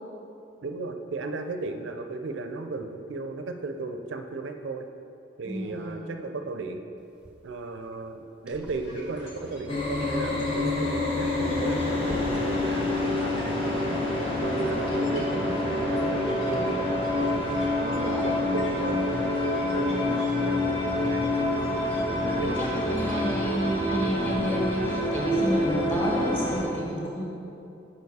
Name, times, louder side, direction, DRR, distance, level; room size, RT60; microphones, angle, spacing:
voice 1, 0.6-4.9 5.4-6.8 7.4-14.0 14.4-17.3 17.7-19.3 19.7-21.9 22.2-23.0, right 3 dB, 75° right, 6 dB, 0.4 m, -36 dB
voice 2, 5.4-6.2 17.8-18.4 22.2-27.2, equal, 10° left, -5 dB, 1.3 m, -31 dB
sound 1, 7.0-13.3, right 1 dB, 5° right, 0.5 m, -45 dB
sound 2, 8.7-23.4, equal, 70° left, 1.4 m, -47 dB
sound 3, 9.7-26.6, left 1 dB, 30° left, 0.8 m, -27 dB
7.0 x 4.8 x 4.7 m, 2.8 s
head